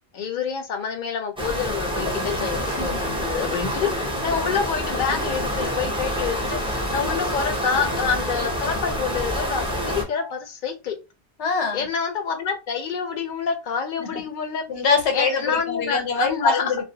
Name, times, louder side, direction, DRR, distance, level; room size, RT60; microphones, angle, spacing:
voice 1, 0.1-11.0 11.7-14.6 15.1-16.7, left 6 dB, 55° left, 0.6 m, -27 dB
sound 1, 1.4-10.0, equal, 5° right, 0.5 m, -27 dB
sound 2, 6.2-6.3 6.7-6.8 7.1-7.6 7.8-7.9 8.2-8.3 8.6-8.7 9.1-9.2 9.5-9.8 10.2-10.3, equal, 50° right, 0.7 m, -41 dB
voice 2, 11.4-11.9 14.0-14.2 14.7-16.8, left 4 dB, 90° left, 1.1 m, -24 dB
2.4 x 2.1 x 2.7 m
omnidirectional pair, 1.1 m